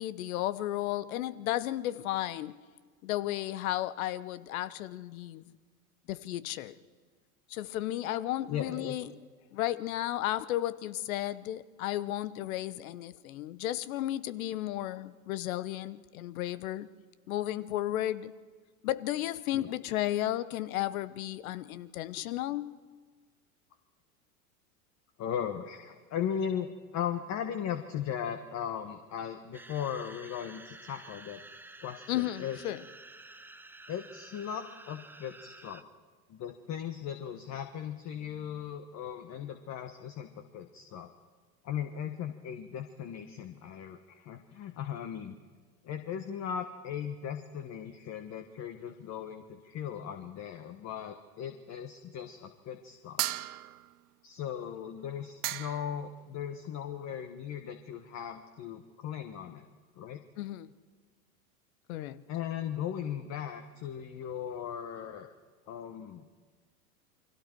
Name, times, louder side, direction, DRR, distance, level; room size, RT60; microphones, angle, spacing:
voice 1, 0.0-2.6 3.0-5.4 6.1-6.8 7.5-9.1 9.5-16.9 17.3-18.3 18.8-22.8 32.1-32.8 60.4-60.7 61.9-62.2, left 14 dB, 70° left, 17 dB, 1.0 m, -33 dB
voice 2, 8.5-9.0 19.5-19.7 25.2-31.4 31.8-32.6 33.9-35.8 36.3-41.1 41.6-45.4 45.8-53.2 54.2-59.7 60.0-60.2 62.3-65.3 65.7-66.2, left 9 dB, 40° left, 7 dB, 1.4 m, -38 dB
sound 1, 29.5-35.8, right 2 dB, 5° right, 0.7 m, -51 dB
sound 2, 53.2-54.0 55.1-55.2 55.4-56.0, right 14 dB, 85° right, 0.8 m, -35 dB
29.0 x 22.0 x 4.6 m, 1.5 s
hypercardioid pair, 100°, 44 cm